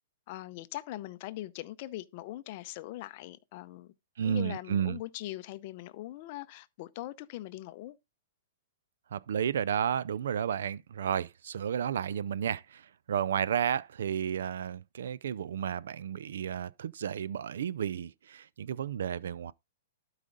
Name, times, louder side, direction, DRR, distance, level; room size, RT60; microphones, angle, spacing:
voice 1, 0.3-3.9 4.2-8.0, left 16 dB, 40° left, 0.7 m, -41 dB
voice 2, 4.2-5.0 9.1-19.5, right 8 dB, 75° right, 0.4 m, -32 dB
12.0 x 5.0 x 3.9 m
hypercardioid pair, 160°, 0 cm